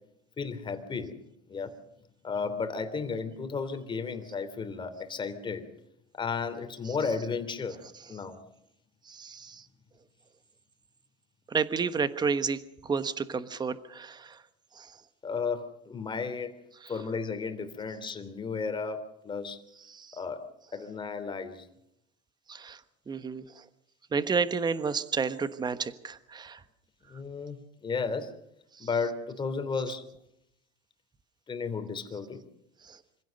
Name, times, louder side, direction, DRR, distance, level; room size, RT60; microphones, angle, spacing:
voice 1, 0.4-1.2 1.5-1.7 2.2-5.7 6.2-7.8 8.1-8.4 15.2-16.6 16.9-19.6 20.1-20.4 20.7-21.7 27.1-28.3 28.8-30.0 31.5-32.4, left 5 dB, 25° left, 9 dB, 3.3 m, -33 dB
voice 2, 9.1-9.6 11.5-14.4 14.8-14.9 16.8-16.9 19.9-20.2 22.5-22.8 23.1-23.6 24.1-26.6 32.8-33.0, right 5 dB, 20° right, 12 dB, 1.3 m, -31 dB
26.0 x 16.5 x 6.6 m, 0.78 s
supercardioid pair, 105°, 19 cm